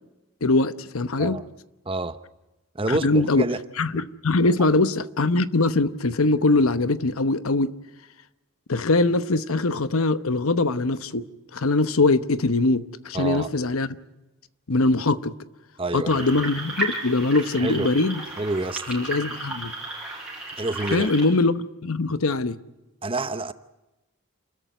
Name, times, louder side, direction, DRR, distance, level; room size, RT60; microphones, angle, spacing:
voice 1, 0.4-1.4 2.9-3.5 3.8-7.7 8.7-11.2 11.5-14.0 14.7-15.3 15.9-18.2 18.9-19.7 20.9-22.6, left 2 dB, 80° left, 1.0 m, -22 dB
voice 2, 1.9-2.2 2.7-3.6 4.6-4.7 13.1-13.5 15.8-16.3 17.6-17.9 18.4-18.8 20.6-21.1 23.0-23.5, right 2 dB, 25° right, 0.8 m, -28 dB
sound 1, 16.1-21.3, right 2 dB, 5° right, 6.9 m, -33 dB
29.0 x 14.0 x 9.4 m
head